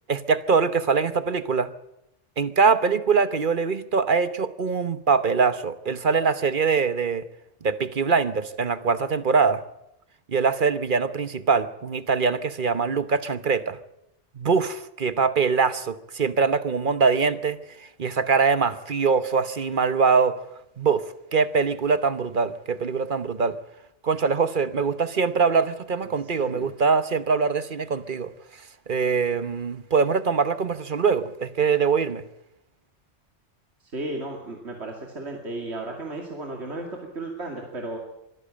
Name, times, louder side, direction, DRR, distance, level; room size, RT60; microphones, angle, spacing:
voice 1, 0.1-1.7 2.4-7.3 7.6-9.6 10.3-13.8 14.4-20.4 20.8-23.6 24.0-28.3 28.9-32.3, right 5 dB, 50° right, 13 dB, 1.1 m, -23 dB
voice 2, 26.4-26.7 33.9-38.0, right 2 dB, 65° right, 1 dB, 2.8 m, -34 dB
23.5 x 13.5 x 8.8 m, 0.83 s
omnidirectional pair, 1.2 m